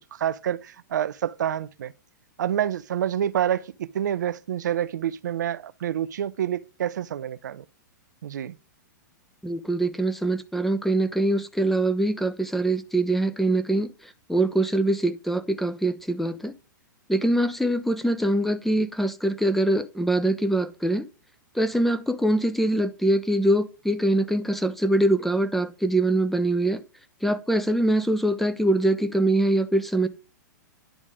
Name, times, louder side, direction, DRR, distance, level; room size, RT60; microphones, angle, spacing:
voice 1, 0.1-1.9 2.4-7.6 8.2-8.6, right 10 dB, 70° right, 0.4 m, -28 dB
voice 2, 9.4-13.9 14.3-16.5 17.1-21.1 21.5-26.8 27.2-30.1, right 1 dB, ahead, 0.5 m, -23 dB
10.0 x 3.6 x 5.1 m
figure-of-eight pair, 110°, 10 cm